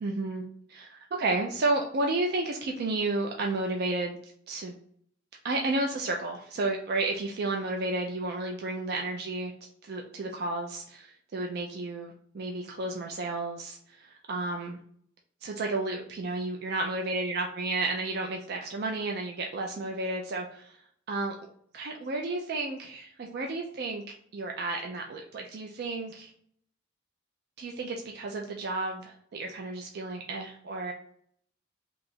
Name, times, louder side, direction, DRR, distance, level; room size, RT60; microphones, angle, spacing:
voice 1, 0.0-4.2 4.5-4.8 5.4-9.5 9.8-14.8 15.4-20.8 21.1-21.3 21.7-24.0 24.3-26.3 27.6-30.9, right 2 dB, 55° right, 1 dB, 0.4 m, -32 dB
2.8 x 2.4 x 4.0 m, 0.64 s
head